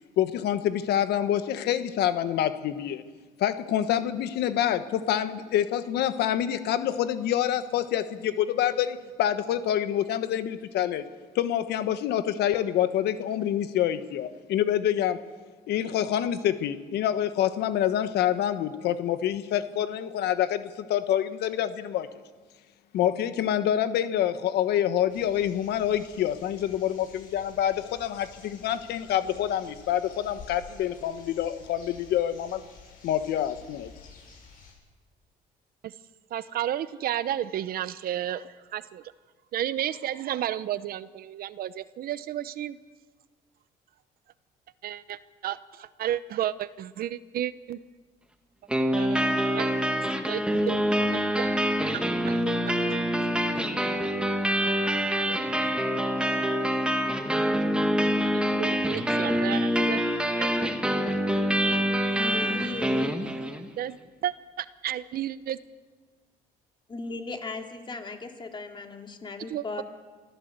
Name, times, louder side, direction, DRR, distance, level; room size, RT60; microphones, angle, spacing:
voice 1, 0.2-3.0 3.4-11.0 11.3-15.2 15.7-22.1 22.9-32.6 33.0-33.9, left 10 dB, 75° left, 11 dB, 1.3 m, -27 dB
sound 1, 25.1-34.7, left 4 dB, 55° left, 7.8 m, -51 dB
voice 2, 36.3-39.1 39.5-42.8 44.8-47.8 49.0-49.7 50.3-51.5 51.9-52.7 53.5-53.6 58.5-60.0 60.4-60.5 60.9-61.0 63.8-65.6 69.5-69.8, right 11 dB, 60° right, 15 dB, 0.9 m, -32 dB
sound 2, 48.7-63.7, equal, 5° right, 1.8 m, -26 dB
voice 3, 62.1-63.2 66.9-69.8, left 3 dB, 30° left, 4 dB, 2.9 m, -36 dB
24.5 x 15.0 x 8.1 m, 1.4 s
cardioid pair, 110°, 17 cm